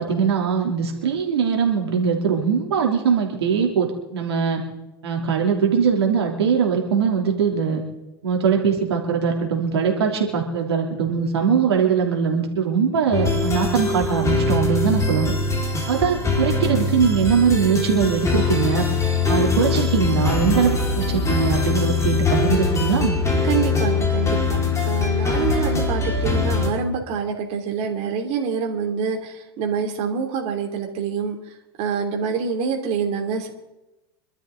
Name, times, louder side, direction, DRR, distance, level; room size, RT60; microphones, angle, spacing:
voice 1, 0.0-4.6 5.0-7.8 8.2-15.3 15.9-18.8 19.3-23.2, right 6 dB, 80° right, 1 dB, 3.1 m, -21 dB
sound 1, 13.1-26.7, left 3 dB, 20° left, 4.6 m, -22 dB
voice 2, 23.4-31.4 31.8-33.5, right 6 dB, 50° right, 2 dB, 3.1 m, -26 dB
26.5 x 12.5 x 3.9 m, 0.96 s
hypercardioid pair, 90°, 13 cm